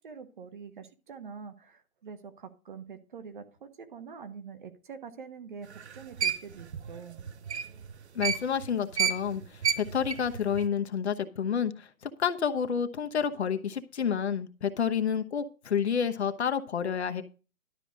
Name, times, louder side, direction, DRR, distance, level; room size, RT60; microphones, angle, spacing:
voice 1, 0.0-5.7 5.9-7.2, right 6 dB, 35° right, 9 dB, 1.2 m, -45 dB
sound 1, 5.7-8.7 8.9-10.7, right 7 dB, 50° right, 0.9 m, -30 dB
voice 2, 8.1-11.9 12.2-17.2, left 7 dB, 50° left, 7 dB, 1.1 m, -29 dB
12.0 x 4.9 x 6.4 m, 0.32 s
hypercardioid pair, 165°, 42 cm